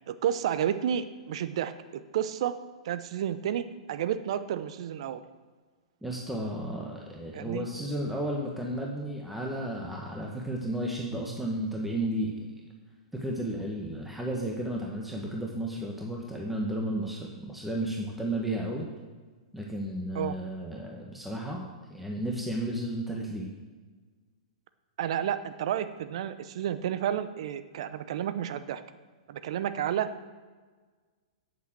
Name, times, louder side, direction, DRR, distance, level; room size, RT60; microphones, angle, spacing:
voice 1, 0.1-1.7 2.1-2.5 2.8-5.2 7.3-7.7 20.1-20.3 25.0-28.8 29.3-30.1, right 10 dB, 60° right, 13 dB, 0.7 m, -31 dB
voice 2, 6.0-12.3 13.1-18.9 19.5-23.5, right 1 dB, 5° right, -2 dB, 1.6 m, -33 dB
9.0 x 8.1 x 7.5 m, 1.4 s
hypercardioid pair, 110°, 3 cm